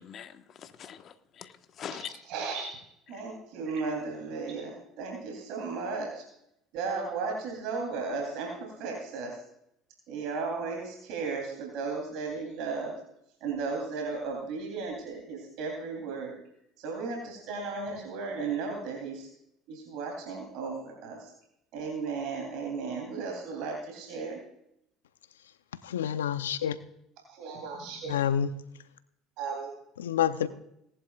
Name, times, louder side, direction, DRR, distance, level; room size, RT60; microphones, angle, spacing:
voice 1, 0.0-2.1 3.1-3.2, left 8 dB, 50° left, 9 dB, 1.3 m, -43 dB
voice 2, 1.9-2.7 3.1-6.2 6.7-9.4 10.1-12.9 13.4-16.3 16.8-19.3 19.7-21.3 21.7-24.4 27.3-28.2 29.4-29.7, right 4 dB, 65° right, 1 dB, 3.3 m, -35 dB
voice 3, 25.8-26.8 28.1-28.6 30.0-30.5, left 9 dB, 90° left, 13 dB, 0.6 m, -28 dB
19.0 x 11.0 x 2.4 m, 0.77 s
hypercardioid pair, 65°, 0 cm